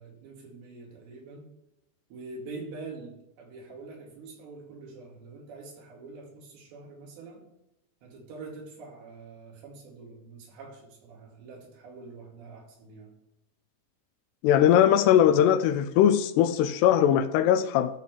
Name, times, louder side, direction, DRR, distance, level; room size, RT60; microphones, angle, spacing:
voice 1, 0.0-1.5 2.1-7.5 8.0-13.2, right 3 dB, 80° right, 4.5 m, -45 dB
voice 2, 14.4-17.9, left 10 dB, 80° left, 2.6 m, -20 dB
12.5 x 7.1 x 3.2 m
omnidirectional pair, 4.9 m